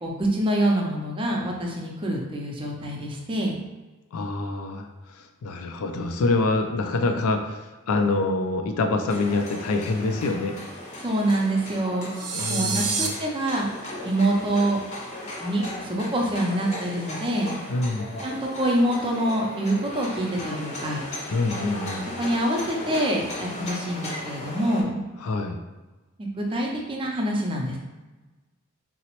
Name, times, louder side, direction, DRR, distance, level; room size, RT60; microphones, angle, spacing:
voice 1, 0.0-3.5 11.0-12.1 12.5-13.7 14.1-14.8 15.4-17.5 18.2-21.0 22.2-25.0 26.2-27.8, right 1 dB, 25° right, 0 dB, 0.4 m, -25 dB
voice 2, 4.1-4.9 5.4-10.6 12.3-13.1 17.7-18.1 21.3-22.1 25.2-25.6, left 3 dB, 80° left, 5 dB, 0.4 m, -26 dB
Ambiente - obra, 9.1-24.8, left 1 dB, 30° left, 0.6 m, -37 dB
sound 1, 12.1-13.1, right 5 dB, 90° right, 0.5 m, -27 dB
3.8 x 2.0 x 2.9 m, 1.2 s
head